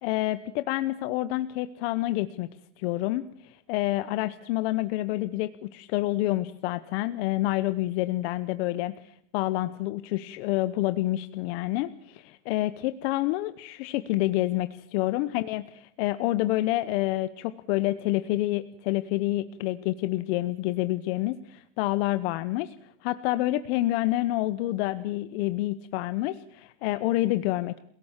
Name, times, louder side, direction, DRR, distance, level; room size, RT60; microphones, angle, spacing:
voice 1, 0.0-2.5 2.8-27.8, left 16 dB, 50° left, 12 dB, 1.0 m, -28 dB
28.5 x 17.5 x 7.4 m, 0.65 s
supercardioid pair, 165°, 40 cm